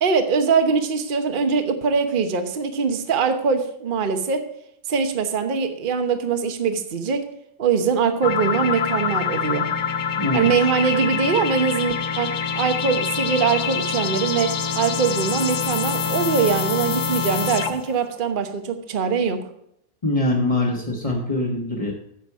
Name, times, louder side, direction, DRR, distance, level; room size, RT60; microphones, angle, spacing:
voice 1, 0.0-4.4 4.9-7.2 7.6-9.7 10.3-19.4, right 5 dB, 35° right, 7 dB, 1.0 m, -22 dB
sound 1, 8.2-17.9, left 6 dB, 85° left, 1.4 m, -25 dB
voice 2, 10.2-10.5 20.0-21.9, left 2 dB, 20° left, -3 dB, 1.3 m, -23 dB
10.5 x 7.2 x 4.7 m, 0.75 s
omnidirectional pair, 1.8 m